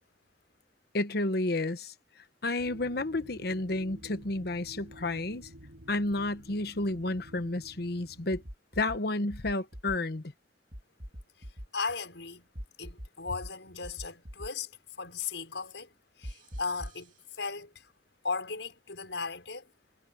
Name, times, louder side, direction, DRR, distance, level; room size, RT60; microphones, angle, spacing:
voice 1, 0.9-1.9 2.4-5.5 5.9-8.4 8.8-10.2, left 2 dB, 60° left, 1.1 m, -31 dB
sound 1, 2.6-8.5, equal, 85° right, 6.6 m, -51 dB
sound 2, 8.3-9.0 9.3-10.0 10.7-11.7 12.5-13.5 13.8-14.5 16.2-17.0, equal, 45° right, 3.4 m, -42 dB
voice 2, 11.7-12.4 12.8-14.7 15.0-17.9 18.2-19.7, left 4 dB, 85° left, 5.7 m, -37 dB
head